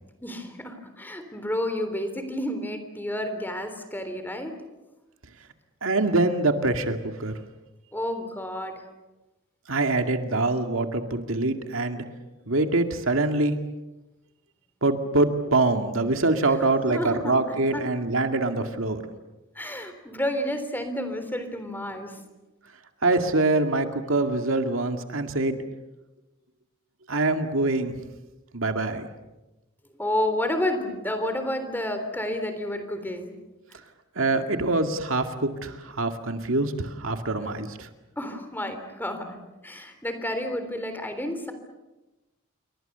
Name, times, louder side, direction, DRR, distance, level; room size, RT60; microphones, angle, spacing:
voice 1, 0.2-4.6 7.9-8.8 16.9-17.8 19.6-22.2 30.0-33.3 38.2-39.4 39.6-41.5, left 1 dB, 10° left, 8 dB, 3.6 m, -30 dB
voice 2, 5.8-7.3 9.7-12.0 12.5-13.6 14.8-19.0 23.0-25.6 27.1-27.9 28.5-29.1 34.2-37.9, right 2 dB, 75° right, 6 dB, 2.2 m, -24 dB
28.5 x 24.0 x 6.9 m, 1.1 s
head